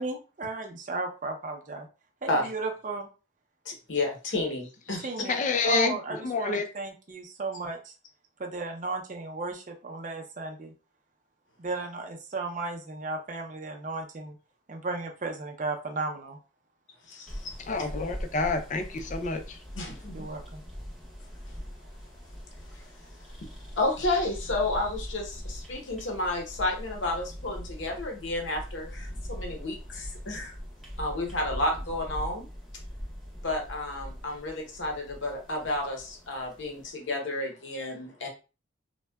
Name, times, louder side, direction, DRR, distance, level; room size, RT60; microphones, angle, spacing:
voice 1, 0.0-1.9 2.2-3.1 5.0-5.4 5.7-7.9 8.4-10.7 11.6-14.4 14.7-16.4 20.1-20.6, right 3 dB, 40° right, 3 dB, 0.5 m, -35 dB
voice 2, 3.6-5.2 17.1-17.5 19.7-20.3 22.7-22.8 23.4-23.5 23.7-30.6 31.0-32.5 33.4-38.3, left 2 dB, 70° left, 2 dB, 0.8 m, -31 dB
voice 3, 5.3-6.0 6.2-6.7 17.7-19.6, left 3 dB, 40° left, 6 dB, 0.4 m, -28 dB
sound 1, 17.3-36.9, equal, ahead, 0.6 m, -41 dB
3.5 x 2.2 x 2.2 m, 0.33 s
head